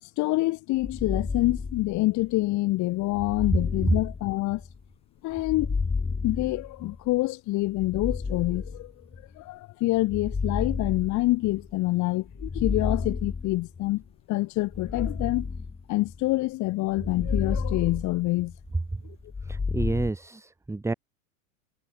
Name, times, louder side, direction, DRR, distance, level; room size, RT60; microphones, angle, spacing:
voice 1, 0.0-4.6 5.2-5.8 6.2-8.9 9.4-14.0 14.3-15.5 15.9-18.5, left 19 dB, 45° left, 2.7 m, -26 dB
sound 1, 0.8-2.3 3.1-4.8 5.3-7.1 7.7-9.3 10.0-11.8 12.3-13.9 14.7-16.3 16.9-18.7 19.2-20.1, left 4 dB, 15° left, 3.5 m, -32 dB
voice 2, 19.5-20.9, right 2 dB, 5° right, 1.8 m, -30 dB
hypercardioid pair, 110°, 42 cm